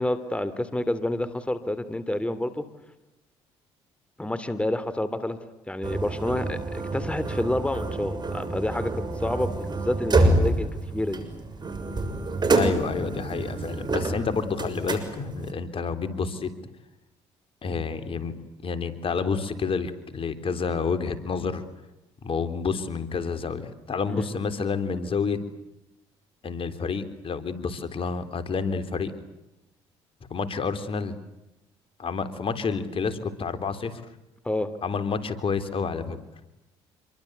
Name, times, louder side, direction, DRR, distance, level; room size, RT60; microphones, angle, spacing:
voice 1, 0.0-2.6 4.2-5.4 5.7-11.2 24.1-24.3 34.4-34.7, left 1 dB, 10° left, 13 dB, 2.9 m, -29 dB
sound 1, 5.8-15.5, right 2 dB, 35° right, 6.5 m, -27 dB
voice 2, 12.5-16.5 17.6-18.3 18.6-21.6 22.2-25.4 26.4-29.1 30.3-31.1 32.0-34.0 34.8-36.2, left 5 dB, 50° left, 10 dB, 3.6 m, -29 dB
27.5 x 23.5 x 8.2 m, 0.93 s
supercardioid pair, 65°, 12 cm